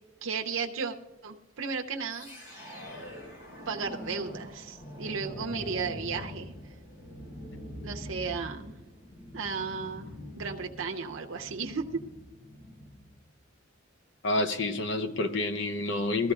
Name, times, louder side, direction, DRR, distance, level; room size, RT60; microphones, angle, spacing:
voice 1, 0.2-1.0 1.2-2.4 3.7-6.5 7.8-8.7 9.3-10.1 10.4-12.0, right 5 dB, 90° right, 3 dB, 0.8 m, -34 dB
sound 1, 2.1-13.2, equal, 90° left, 4.8 m, -44 dB
voice 2, 14.2-16.3, left 2 dB, 65° left, 9 dB, 0.8 m, -28 dB
20.0 x 14.0 x 2.5 m, 1.1 s
head